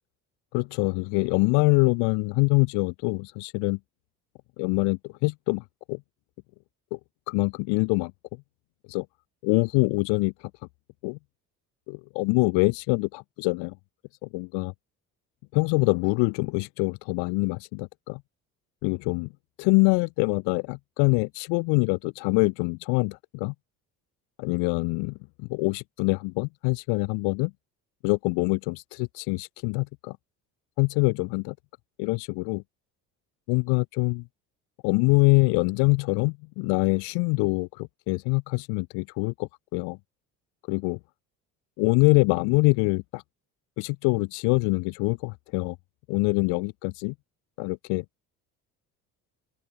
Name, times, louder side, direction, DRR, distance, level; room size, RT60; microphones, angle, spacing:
voice 1, 0.5-3.8 4.6-5.6 5.9-6.0 6.9-7.0 7.3-8.1 8.9-9.1 9.4-10.3 11.0-11.2 11.9-13.8 14.2-14.7 15.5-18.2 18.8-19.3 19.6-23.5 24.4-27.5 28.0-30.2 30.8-31.5 32.0-32.6 33.5-34.2 34.8-40.0 40.7-41.0 41.8-43.2 43.8-45.8 46.1-47.1 47.6-48.0, left 32 dB, 60° left, 0.7 m, -24 dB
open air
hypercardioid pair, 55°, 45 cm